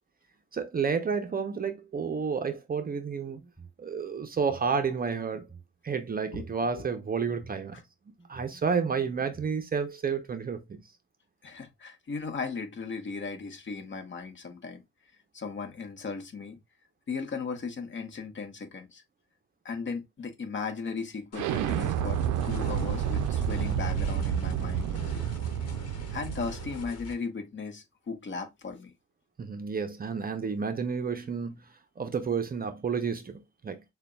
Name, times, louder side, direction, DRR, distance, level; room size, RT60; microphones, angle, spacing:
voice 1, 0.5-3.4 3.8-5.5 5.8-7.8 8.3-10.8 29.4-31.6 32.0-33.8, right 5 dB, 30° right, 0.6 m, -30 dB
sound 1, 3.1-3.8 4.3-5.7 6.3-7.6 8.2-9.5, right 5 dB, 5° left, 2.9 m, -52 dB
voice 2, 11.4-14.8 15.3-16.6 17.1-19.0 19.6-22.2 22.4-25.2 26.1-28.9, left 5 dB, 40° left, 1.0 m, -37 dB
sound 2, 21.3-27.1, left 3 dB, 55° left, 1.2 m, -45 dB
Explosion, 21.3-26.9, right 9 dB, 85° right, 0.5 m, -30 dB
6.5 x 2.2 x 2.2 m
cardioid pair, 90°, 30 cm